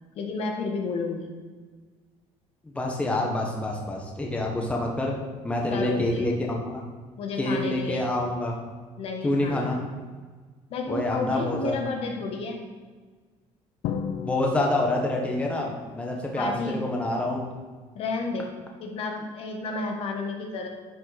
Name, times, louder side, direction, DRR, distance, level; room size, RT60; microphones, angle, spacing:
voice 1, 0.1-1.3 5.7-6.3 7.2-8.1 9.0-9.8 10.7-12.6 16.4-16.8 17.9-18.5 18.8-20.7, left 3 dB, 55° left, 2 dB, 1.4 m, -31 dB
voice 2, 2.6-5.1 5.4-6.8 7.4-8.5 9.2-9.8 10.9-11.8 14.2-17.4, left 1 dB, 10° left, 0 dB, 1.3 m, -27 dB
Drum, 13.8-15.6, left 7 dB, 70° left, 0.7 m, -34 dB
11.0 x 5.6 x 4.2 m, 1.4 s
cardioid pair, 145°, 12 cm